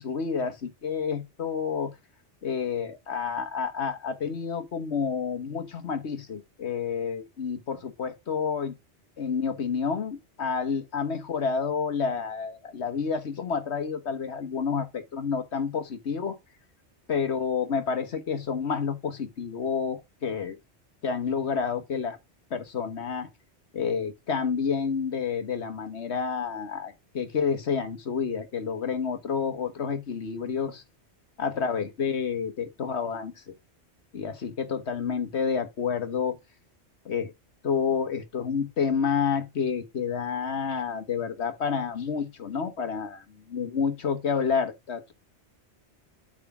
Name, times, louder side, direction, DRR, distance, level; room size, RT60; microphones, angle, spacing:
voice 1, 0.0-1.9 2.4-8.7 9.2-16.4 17.1-20.6 21.0-22.2 22.5-23.3 23.7-30.8 31.4-33.5 34.1-36.4 37.0-37.3 37.6-45.1, left 6 dB, 70° left, 1.5 m, -29 dB
8.1 x 3.7 x 5.8 m
omnidirectional pair, 1.2 m